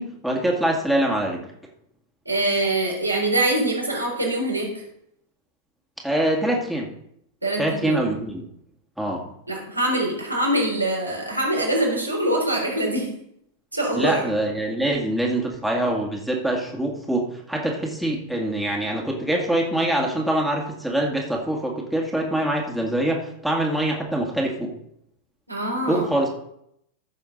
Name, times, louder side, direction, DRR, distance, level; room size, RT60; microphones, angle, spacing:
voice 1, 0.0-1.5 6.0-6.9 7.6-8.4 9.0-9.2 13.9-24.7 25.9-26.3, right 1 dB, ahead, -1 dB, 2.2 m, -24 dB
voice 2, 2.3-4.8 7.4-8.0 9.5-13.1 13.7-14.2 25.5-26.0, right 1 dB, 85° right, -2 dB, 3.8 m, -24 dB
14.5 x 6.8 x 4.0 m, 0.74 s
figure-of-eight pair, 90°, 0 cm